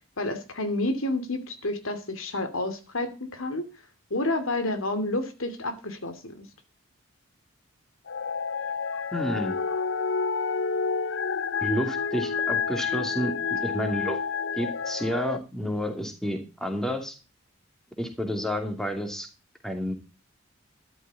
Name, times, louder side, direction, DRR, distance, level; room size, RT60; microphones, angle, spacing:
voice 1, 0.2-3.7 4.1-6.4, left 2 dB, 80° left, 9 dB, 2.7 m, -29 dB
sound 1, 8.1-15.4, left 5 dB, 60° left, 0.6 m, -29 dB
voice 2, 9.1-9.5 11.6-13.3 13.6-14.2 14.6-17.2 18.0-19.3 19.6-19.9, equal, ahead, 5 dB, 2.7 m, -30 dB
13.5 x 12.0 x 4.1 m, 0.31 s
head